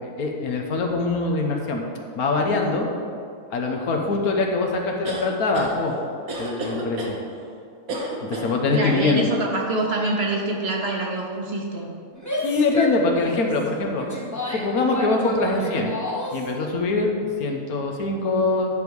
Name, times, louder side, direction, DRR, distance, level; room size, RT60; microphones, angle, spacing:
voice 1, 0.0-1.8 2.1-2.9 3.5-5.9 6.4-7.2 8.2-9.3 12.4-15.9 16.3-18.7, left 3 dB, 75° left, 1 dB, 1.4 m, -23 dB
sound 1, 5.0-5.7 6.3-7.1 7.9-8.5, right 1 dB, 70° right, 1.6 m, -30 dB
voice 2, 8.7-11.9, right 2 dB, 50° right, 0 dB, 1.0 m, -25 dB
Female speech woman speaking / Yell, 12.1-16.5, left 1 dB, 15° left, 1.0 m, -31 dB
10.5 x 5.2 x 4.7 m, 2.4 s
omnidirectional pair, 1.6 m